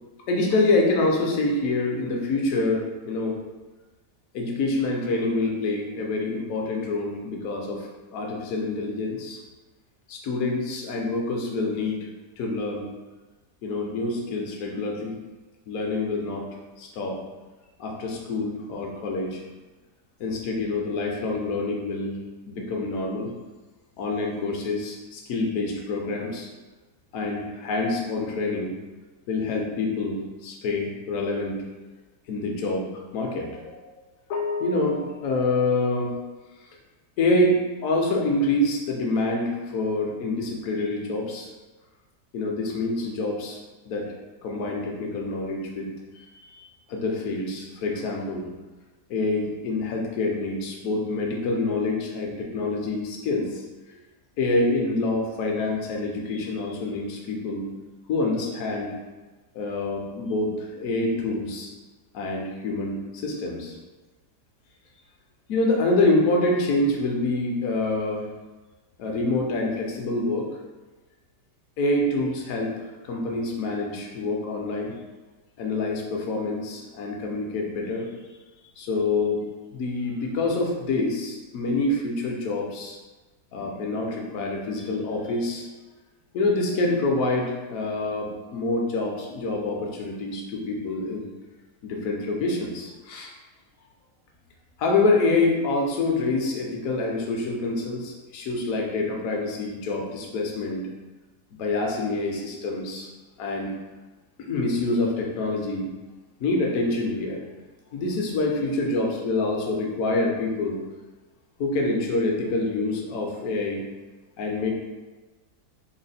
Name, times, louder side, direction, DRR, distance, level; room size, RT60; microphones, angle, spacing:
voice 1, 0.3-3.4 4.3-9.4 10.1-12.1 12.4-12.9 13.6-15.1 15.7-16.5 16.8-17.2 17.8-19.4 20.2-22.2 22.5-23.3 24.0-26.5 27.1-28.7 29.3-31.6 32.3-32.9 33.1-33.5 34.3-36.1 37.2-41.5 42.3-43.6 43.9-44.1 44.4-45.9 46.1-48.4 49.1-53.6 54.4-57.7 58.1-58.9 59.5-61.7 62.1-63.8 65.5-68.2 69.0-70.5 71.8-72.7 73.0-74.9 75.6-78.1 78.8-79.4 79.7-83.0 83.5-85.7 86.3-91.3 91.8-93.3 94.8-100.9 101.6-103.1 103.4-103.7 104.4-105.9 106.4-107.4 107.9-110.8 111.6-113.8 114.4-114.7, left 2 dB, 65° left, 0 dB, 1.0 m, -26 dB
3.9 x 2.1 x 4.0 m, 1.2 s
omnidirectional pair, 1.8 m